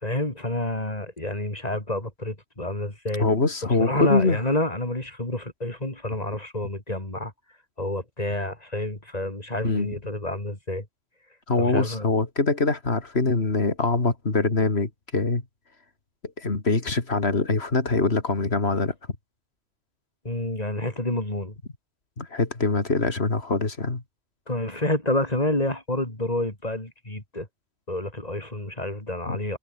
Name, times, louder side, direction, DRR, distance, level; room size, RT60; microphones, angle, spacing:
voice 1, 0.0-3.3 3.7-7.3 7.8-10.8 11.6-12.1 20.2-21.5 24.5-27.5 27.9-29.6, left 1 dB, 40° left, 5.0 m, -28 dB
voice 2, 3.2-4.4 9.6-9.9 11.5-15.4 16.4-18.9 22.2-24.0 29.3-29.4, left 3 dB, 80° left, 3.2 m, -23 dB
omnidirectional pair, 1.1 m